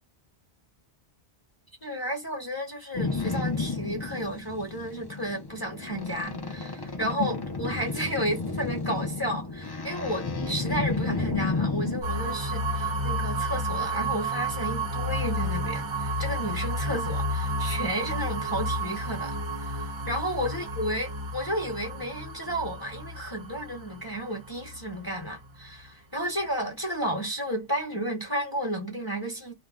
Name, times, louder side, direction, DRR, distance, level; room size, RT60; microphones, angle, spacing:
voice 1, 1.8-29.5, equal, 20° left, 0.9 m, -32 dB
Boat Water vehicle, 2.9-12.0, left 3 dB, 35° left, 0.4 m, -31 dB
sound 1, 12.0-25.8, right 1 dB, 35° right, 0.5 m, -31 dB
2.5 x 2.1 x 3.4 m
omnidirectional pair, 1.1 m